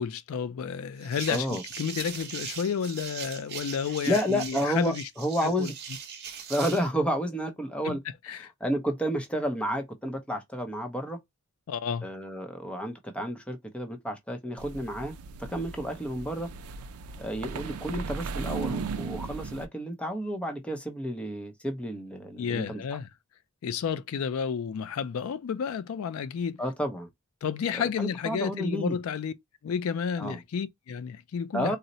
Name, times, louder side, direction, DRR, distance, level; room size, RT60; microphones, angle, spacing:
voice 1, 0.0-5.0 5.4-5.7 7.8-8.0 8.2-8.5 11.7-12.1 22.4-23.1 23.6-26.6 27.4-29.3 29.6-31.8, left 7 dB, 70° left, 0.3 m, -31 dB
sound 1, 1.0-6.9, right 7 dB, 45° right, 0.9 m, -40 dB
voice 2, 1.3-1.6 4.1-5.7 6.5-8.0 8.6-11.2 12.0-15.1 15.5-16.5 17.2-22.8 26.6-27.1 27.8-29.0 30.2-30.4 31.5-31.8, equal, 5° left, 0.6 m, -31 dB
sound 2, 14.6-19.7, right 5 dB, 80° right, 0.4 m, -37 dB
4.0 x 2.0 x 2.6 m
head